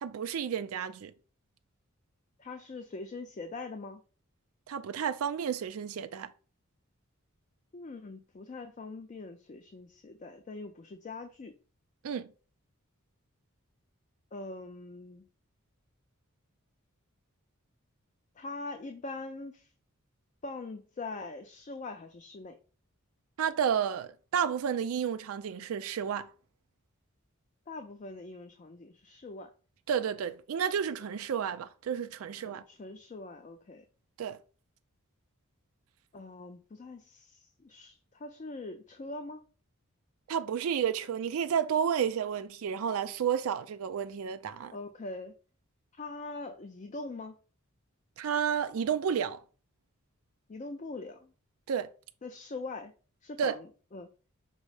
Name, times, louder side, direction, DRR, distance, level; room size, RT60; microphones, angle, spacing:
voice 1, 0.0-1.1 4.7-6.3 12.0-12.3 23.4-26.3 29.9-32.6 34.2-34.4 40.3-44.7 48.2-49.4 51.7-51.9 53.4-53.6, right 8 dB, 75° right, 0.4 m, -31 dB
voice 2, 2.4-4.0 7.7-11.5 14.3-15.2 18.4-19.7 20.4-22.6 27.7-29.5 32.4-33.8 36.1-39.4 44.7-45.3 46.0-47.4 50.5-51.3 52.2-52.9 53.2-54.1, left 3 dB, 35° left, 0.4 m, -42 dB
5.3 x 2.0 x 4.7 m
head